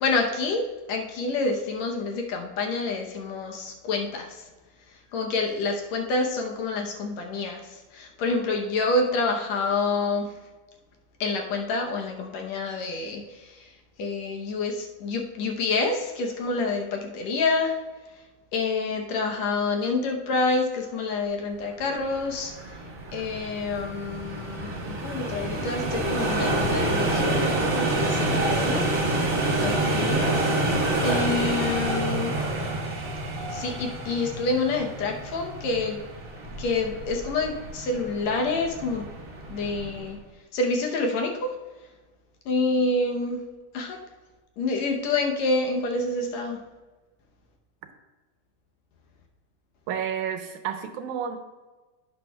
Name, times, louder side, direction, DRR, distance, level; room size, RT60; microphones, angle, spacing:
voice 1, 0.0-4.5 5.1-10.3 11.2-13.7 14.0-17.8 18.5-22.5 23.1-24.7 25.0-30.4 31.0-32.3 33.5-36.0 36.6-39.1 39.5-40.2 40.5-41.5 42.5-43.4 43.7-44.0 44.6-46.6, left 3 dB, 70° left, 2 dB, 2.0 m, -27 dB
sound 1, 21.8-40.1, right 2 dB, 35° right, 1.4 m, -28 dB
voice 2, 49.9-51.4, right 8 dB, 80° right, 6 dB, 2.1 m, -30 dB
11.0 x 8.5 x 2.3 m, 1.2 s
omnidirectional pair, 3.5 m